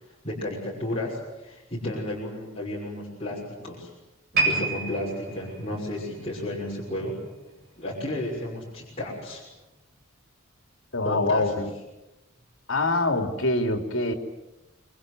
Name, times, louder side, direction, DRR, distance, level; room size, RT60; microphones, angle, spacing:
voice 1, 0.2-3.9 4.3-7.2 7.8-9.4 11.0-11.5, left 1 dB, 30° left, -4 dB, 6.1 m, -32 dB
sound 1, 4.3-7.6 7.9-8.2 8.9-9.0, right 3 dB, 50° right, 8.0 m, -30 dB
voice 2, 10.9-11.7 12.7-14.1, left 2 dB, 70° left, 5 dB, 3.2 m, -24 dB
26.5 x 23.5 x 7.9 m, 0.97 s
head